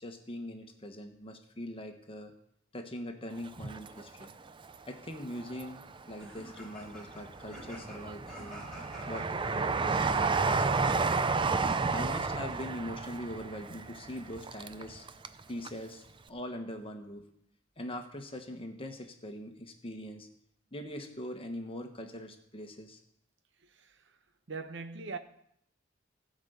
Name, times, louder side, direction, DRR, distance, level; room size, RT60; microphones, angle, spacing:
voice 1, 0.0-2.3 2.7-4.3 4.8-8.7 9.1-11.1 11.9-15.1 15.5-17.3 17.8-20.3 20.7-23.0, equal, 30° left, 1.4 m, -42 dB
Train, 3.4-4.7 5.1-6.1 6.6-15.4 15.6-15.7, right 4 dB, 25° right, 0.5 m, -31 dB
sound 1, 6.2-9.2 11.4-12.2, left 1 dB, 5° left, 3.6 m, -49 dB
voice 2, 23.6-24.2 24.5-25.2, right 4 dB, 65° right, 1.0 m, -41 dB
15.5 x 5.2 x 8.0 m
head